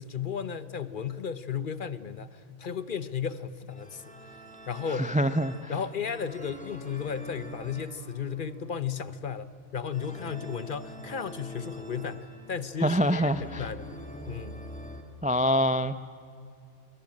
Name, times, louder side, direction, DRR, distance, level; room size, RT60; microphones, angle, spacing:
voice 1, 0.0-4.2 4.7-5.2 5.7-13.9 14.3-14.5, left 7 dB, 50° left, 0.9 m, -34 dB
sound 1, 3.7-15.0, equal, 5° left, 2.5 m, -45 dB
voice 2, 4.9-5.7 12.8-13.7 15.2-16.1, equal, 10° right, 0.4 m, -25 dB
25.0 x 22.5 x 8.7 m
omnidirectional pair, 1.2 m